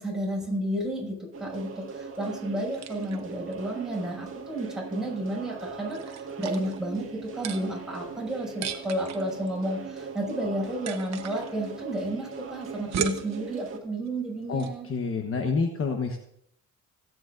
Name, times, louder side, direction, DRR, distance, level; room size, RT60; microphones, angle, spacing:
voice 1, 0.0-14.9, right 1 dB, ahead, -4 dB, 6.6 m, -32 dB
sound 1, 1.3-13.8, right 5 dB, 45° right, 2.0 m, -40 dB
sound 2, 2.0-14.8, right 8 dB, 65° right, 1.2 m, -40 dB
voice 2, 14.5-16.2, left 4 dB, 45° left, 4 dB, 1.2 m, -28 dB
25.5 x 9.3 x 2.6 m, 0.71 s
cardioid pair, 90°, 30 cm